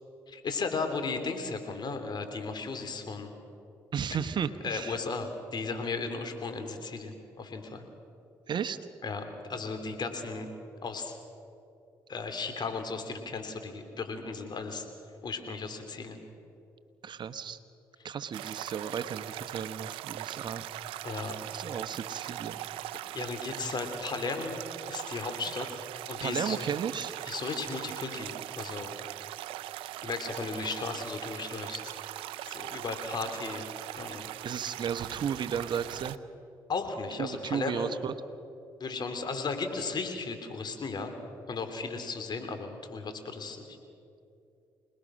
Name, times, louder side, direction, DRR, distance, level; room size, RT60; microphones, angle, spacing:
voice 1, 0.3-3.3 4.1-4.2 4.6-7.8 9.0-10.5 10.8-11.2 12.1-14.8 15.2-16.2 21.0-21.4 23.1-25.8 26.1-26.6 27.2-28.9 30.0-31.9 32.5-33.6 34.0-34.2 36.7-37.9 38.8-41.1 41.5-43.8, left 4 dB, 55° left, 7 dB, 3.3 m, -35 dB
voice 2, 3.9-5.0 8.5-8.8 17.0-17.6 18.0-20.6 21.5-22.6 26.2-27.1 34.4-36.2 37.2-38.1, right 7 dB, 55° right, 11 dB, 1.1 m, -34 dB
sound 1, 18.3-36.2, right 15 dB, 80° right, 0.6 m, -40 dB
26.5 x 19.5 x 6.4 m, 2.7 s
supercardioid pair, 55°, 9 cm